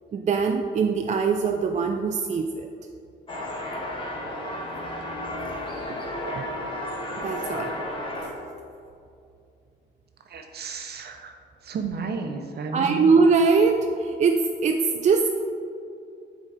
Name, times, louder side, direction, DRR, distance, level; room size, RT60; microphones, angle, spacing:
voice 1, 0.1-2.7 6.3-6.4 7.2-7.8 12.7-15.3, right 4 dB, 35° right, 4 dB, 0.4 m, -22 dB
sound 1, 3.3-8.3, left 1 dB, 25° left, 1.5 m, -32 dB
voice 2, 10.3-11.3 11.6-13.1, right 4 dB, 55° right, 4 dB, 0.9 m, -33 dB
7.1 x 4.1 x 4.9 m, 2.5 s
cardioid pair, 90°, 20 cm